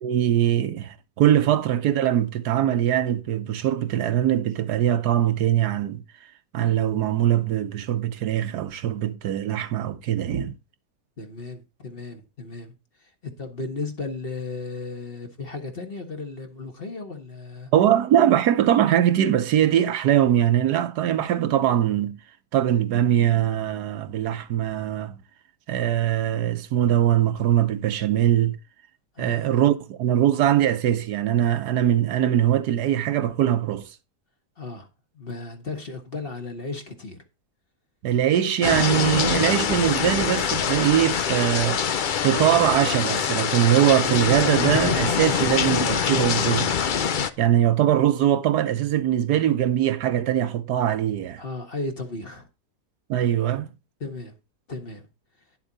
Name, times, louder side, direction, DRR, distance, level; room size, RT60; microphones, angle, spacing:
voice 1, 0.0-6.0 6.5-10.6 17.7-22.2 22.5-25.1 25.7-28.6 29.2-33.9 38.0-41.8 42.2-46.7 47.4-51.4 53.1-53.7, right 11 dB, 75° right, 1.3 m, -22 dB
voice 2, 11.2-12.7 13.0-17.7 29.1-29.5 34.6-34.9 35.1-37.2 51.4-52.5 54.0-54.3 54.7-55.1, left 3 dB, 35° left, 1.6 m, -35 dB
sound 1, 38.6-47.3, left 7 dB, 85° left, 0.4 m, -24 dB
10.5 x 7.3 x 4.1 m
omnidirectional pair, 1.8 m